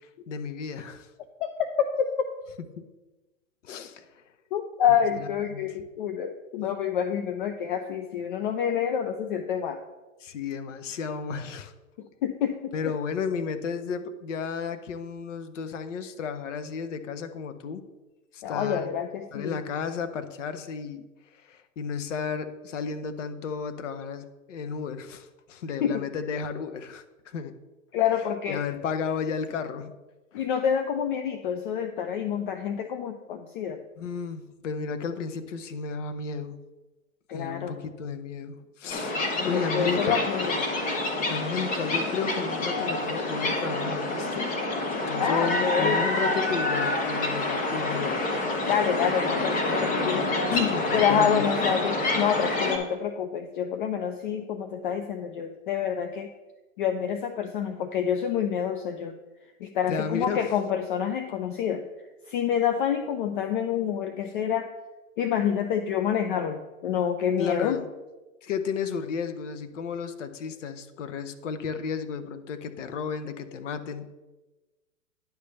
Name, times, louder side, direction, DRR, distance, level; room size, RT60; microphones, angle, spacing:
voice 1, 0.3-1.1 2.8-2.9 3.6-4.2 5.2-5.7 10.2-11.7 12.7-17.8 18.3-18.9 19.3-21.1 21.4-27.5 28.5-29.9 30.3-30.4 34.0-36.6 37.3-39.2 39.4-40.2 41.3-44.5 45.1-48.2 49.9-50.1 50.5-51.4 59.9-60.5 67.4-67.8 68.4-74.1, left 6 dB, 65° left, 10 dB, 0.9 m, -33 dB
voice 2, 1.4-2.3 4.5-9.8 12.0-12.9 18.4-19.6 25.8-26.0 27.9-28.6 30.3-33.8 37.3-37.8 39.4-40.6 45.2-46.0 48.7-50.3 50.9-56.3 56.8-59.1 59.6-61.8 62.3-64.7 65.2-67.8, left 8 dB, 40° left, 8 dB, 0.5 m, -27 dB
sound 1, 38.9-52.8, left 2 dB, 20° left, 1.0 m, -27 dB
9.8 x 3.4 x 6.7 m, 1.2 s
hypercardioid pair, 120°, 41 cm